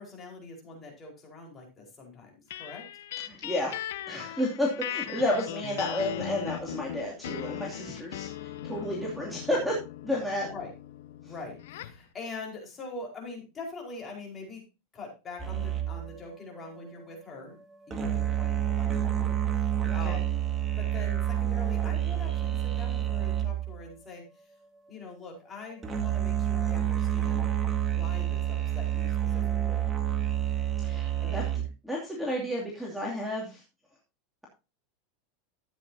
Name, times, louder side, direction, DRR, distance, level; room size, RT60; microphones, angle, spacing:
voice 1, 0.0-2.8 10.4-10.7 11.2-14.6 14.9-17.6 17.9-20.4 20.8-24.2 24.9-27.5 27.9-29.9 31.2-31.7, left 3 dB, 20° left, 0 dB, 4.7 m, -43 dB
sound 1, 2.5-12.0, left 12 dB, 80° left, 0.9 m, -39 dB
voice 2, 3.3-3.8 4.1-9.7 10.0-10.5 11.2-11.3 19.9-20.2 30.8-33.6, left 1 dB, ahead, -3 dB, 2.7 m, -31 dB
sound 2, 15.4-23.8 25.8-31.6, right 11 dB, 20° right, 1.9 m, -29 dB
13.5 x 9.1 x 2.8 m, 0.28 s
supercardioid pair, 150°, 0 cm